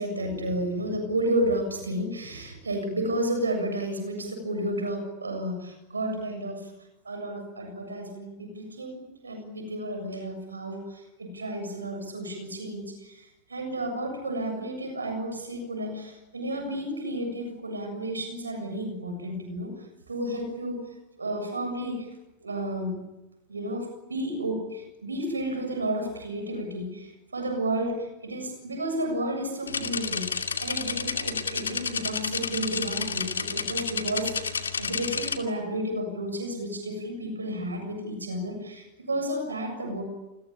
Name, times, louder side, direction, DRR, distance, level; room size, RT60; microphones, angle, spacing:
voice 1, 0.0-6.7 7.0-19.7 20.1-20.8 21.2-22.1 22.4-23.0 23.5-40.0, right 1 dB, 85° right, 6 dB, 7.4 m, -32 dB
sound 1, 29.7-35.4, left 5 dB, 85° left, 2.4 m, -31 dB
29.0 x 22.5 x 8.7 m, 0.96 s
figure-of-eight pair, 90°, 0 cm